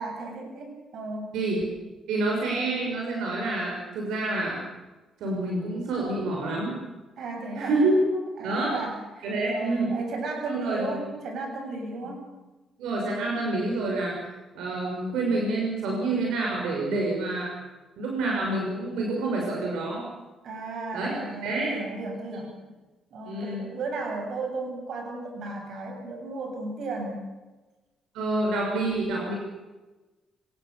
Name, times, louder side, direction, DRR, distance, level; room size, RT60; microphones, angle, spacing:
voice 1, 0.0-1.3 7.2-8.1 8.4-12.3 20.4-22.5 23.1-27.3, right 3 dB, 65° right, 2 dB, 7.9 m, -35 dB
voice 2, 2.1-4.6 5.2-6.8 7.6-8.0 8.4-8.7 9.2-9.9 10.5-10.8 12.0-12.1 12.8-14.2 14.5-17.5 18.0-20.1 20.9-21.1 21.4-21.7 22.3-22.4 23.3-23.7 28.1-29.3, right 2 dB, 85° right, -1 dB, 6.3 m, -27 dB
25.5 x 19.5 x 7.0 m, 1.2 s
cardioid pair, 90°, 0 cm